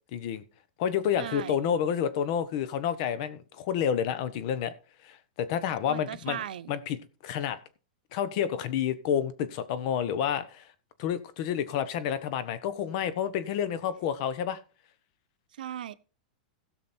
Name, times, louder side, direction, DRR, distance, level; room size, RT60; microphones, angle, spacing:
voice 1, 0.1-0.4 0.8-4.7 5.0-6.4 6.7-7.6 8.1-10.7 11.0-14.6, left 8 dB, 45° left, 1.2 m, -29 dB
voice 2, 1.2-1.6 5.9-6.7 15.5-15.9, right 10 dB, 85° right, 0.8 m, -37 dB
16.0 x 6.3 x 4.4 m
supercardioid pair, 160°, 5 cm